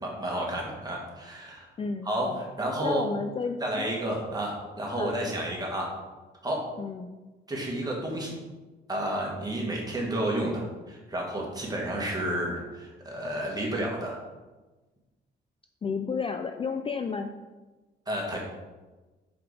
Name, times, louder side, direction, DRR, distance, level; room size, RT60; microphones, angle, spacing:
voice 1, 0.0-1.7 2.0-3.1 3.6-5.9 6.4-6.7 7.5-8.3 8.9-14.2 18.1-18.4, right 1 dB, 20° right, -2 dB, 1.9 m, -31 dB
voice 2, 1.8-2.4 2.8-3.9 4.9-5.2 6.8-7.1 15.8-17.3, left 5 dB, 30° left, 7 dB, 0.4 m, -32 dB
5.1 x 4.9 x 4.8 m, 1.2 s
cardioid pair, 90°, 20 cm